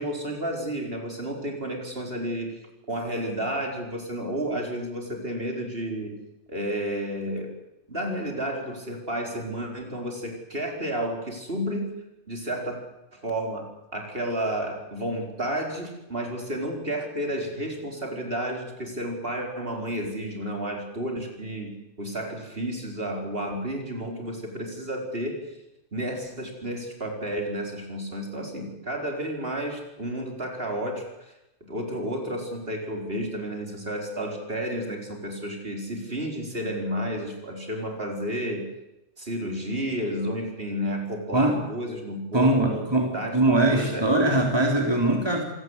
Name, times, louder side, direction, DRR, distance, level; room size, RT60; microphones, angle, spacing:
voice 1, 0.0-2.6 2.9-6.2 6.5-7.5 7.9-11.9 12.3-12.8 13.1-13.7 13.9-25.6 25.9-31.3 31.6-38.7 39.2-42.9 43.1-43.4 43.6-44.1, right 1 dB, 50° right, 2 dB, 5.0 m, -31 dB
voice 2, 42.3-45.4, right 2 dB, 20° right, 2 dB, 3.6 m, -22 dB
27.0 x 18.0 x 8.2 m, 0.90 s
omnidirectional pair, 1.2 m